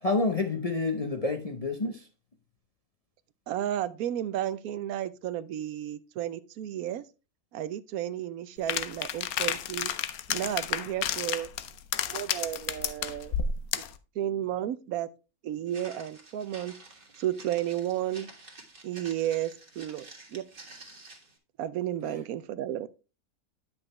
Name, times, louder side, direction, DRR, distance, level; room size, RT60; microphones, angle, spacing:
voice 1, 0.0-2.0, left 3 dB, 35° left, 0.6 m, -28 dB
voice 2, 3.5-7.0 7.5-9.9 10.3-11.5 12.1-13.4 14.2-15.1 15.4-16.8 17.2-18.3 18.8-20.5 21.6-22.9, right 11 dB, 75° right, 1.1 m, -32 dB
sound 1, 8.7-14.0, left 9 dB, 75° left, 1.1 m, -31 dB
Walk footsteps, 15.7-21.4, right 2 dB, 35° right, 1.9 m, -50 dB
9.8 x 5.9 x 3.2 m
omnidirectional pair, 1.6 m